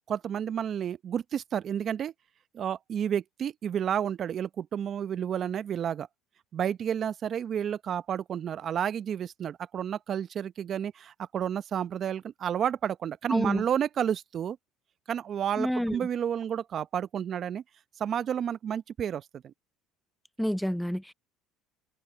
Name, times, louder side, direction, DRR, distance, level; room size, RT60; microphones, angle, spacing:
voice 1, 0.1-2.1 2.5-6.1 6.5-14.6 15.1-17.6 18.0-19.5, right 9 dB, 45° right, 0.9 m, -31 dB
voice 2, 13.3-13.6 15.6-16.1 20.4-21.1, equal, ahead, 0.4 m, -29 dB
supercardioid pair, 90°, 0 cm